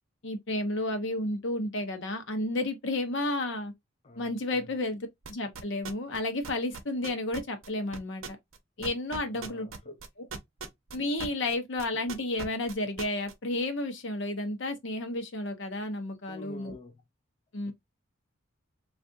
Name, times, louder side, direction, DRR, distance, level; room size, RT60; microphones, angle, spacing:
voice 1, 0.2-3.7 4.2-8.4 8.8-10.3 10.9-16.7 17.5-17.7, left 2 dB, 60° left, 0.8 m, -32 dB
voice 2, 4.0-4.8 9.3-10.0 16.3-17.0 17.7-17.8, left 1 dB, 30° left, 0.4 m, -48 dB
sound 1, 5.3-6.2 6.4-11.5 11.8-13.3, right 4 dB, 75° right, 0.6 m, -39 dB
3.3 x 2.5 x 2.6 m
head